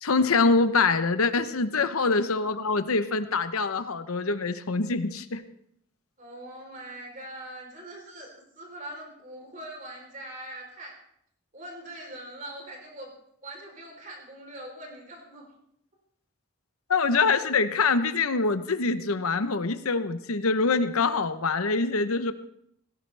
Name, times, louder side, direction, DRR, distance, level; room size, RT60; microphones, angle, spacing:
voice 1, 0.0-5.4 16.9-22.3, left 4 dB, 90° left, 11 dB, 0.9 m, -24 dB
voice 2, 6.2-8.3 8.6-10.9 11.5-13.1 13.4-15.5, right 1 dB, 35° right, 1 dB, 3.7 m, -42 dB
18.0 x 17.0 x 3.4 m, 0.72 s
head